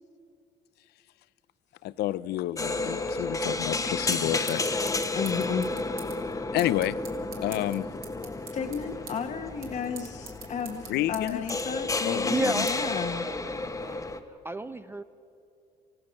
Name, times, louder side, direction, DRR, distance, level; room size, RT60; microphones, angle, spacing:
voice 1, 1.8-4.9 6.5-7.0 7.4-7.9 10.9-11.4 12.0-12.7, left 14 dB, 75° left, 18 dB, 0.6 m, -30 dB
sound 1, 2.6-14.2, left 3 dB, 20° left, 1.1 m, -32 dB
sound 2, 3.5-14.0, right 7 dB, 60° right, 3.3 m, -48 dB
voice 2, 5.1-5.7 6.3-6.5 8.5-13.2, left 6 dB, 45° left, 5 dB, 1.2 m, -33 dB
voice 3, 12.3-14.1 14.4-15.0, right 2 dB, 15° right, 11 dB, 0.5 m, -33 dB
27.0 x 16.0 x 6.3 m, 2.6 s
cardioid pair, 110°, 17 cm